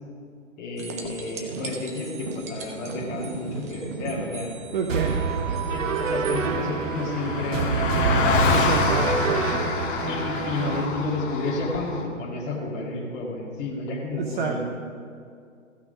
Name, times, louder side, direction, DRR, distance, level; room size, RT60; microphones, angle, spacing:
voice 1, 0.6-4.8 5.7-8.5 10.1-14.6, left 2 dB, 25° left, -4 dB, 2.2 m, -31 dB
sound 1, 0.8-6.4 9.4-9.5, right 3 dB, 15° right, 0.4 m, -37 dB
voice 2, 4.7-5.2 8.5-9.5 14.1-14.6, right 5 dB, 40° right, 3 dB, 0.8 m, -28 dB
Car passing by, 4.9-5.0 5.2-12.0, left 5 dB, 40° left, 1.5 m, -27 dB
sound 2, 4.9-10.9, right 6 dB, 75° right, 0.9 m, -27 dB
15.0 x 5.9 x 5.3 m, 2.3 s
figure-of-eight pair, 125°, 39 cm